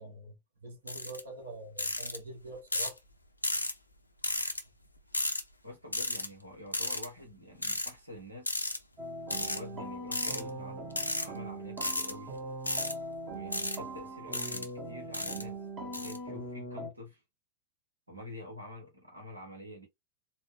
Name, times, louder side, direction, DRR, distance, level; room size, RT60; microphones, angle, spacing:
voice 1, 0.0-3.0, right 2 dB, 65° right, 1.2 m, -45 dB
sound 1, 0.9-1.2 1.8-2.2 2.7-3.0 3.4-3.7 4.2-4.6 5.1-5.4 5.9-6.3 6.7-7.1 7.6-7.9 8.5-8.8 9.3-9.6 10.1-10.4 10.9-11.3 11.8-12.1 12.7-12.9 13.5-13.8 14.3-14.7 15.1-15.4 15.9-16.2, left 2 dB, 85° left, 0.6 m, -33 dB
voice 2, 5.6-8.5 9.3-12.4 13.2-17.2 18.1-19.9, left 1 dB, 85° right, 1.1 m, -47 dB
sound 2, 9.0-16.9, right 2 dB, 35° right, 1.0 m, -41 dB
4.0 x 2.2 x 3.3 m
figure-of-eight pair, 90°, 0 cm